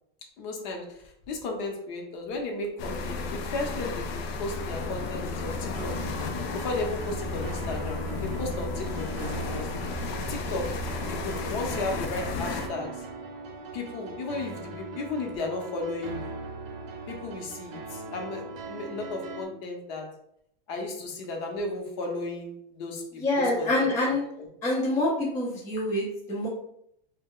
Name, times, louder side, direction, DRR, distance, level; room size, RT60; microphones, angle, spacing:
voice 1, 0.4-0.8 1.3-4.1 4.4-5.9 6.5-8.0 8.4-9.7 10.3-10.8 11.1-12.9 13.7-16.3 17.1-20.0 20.7-23.0 23.4-23.9, left 2 dB, 50° left, 2 dB, 0.7 m, -34 dB
sound 1, 2.8-12.7, left 3 dB, 85° left, 0.5 m, -33 dB
sound 2, 5.7-19.4, right 3 dB, 60° right, 0.6 m, -40 dB
voice 2, 23.1-24.2 24.6-26.5, left 1 dB, 10° left, -5 dB, 0.3 m, -26 dB
2.3 x 2.1 x 3.6 m, 0.73 s
supercardioid pair, 150°, 30 cm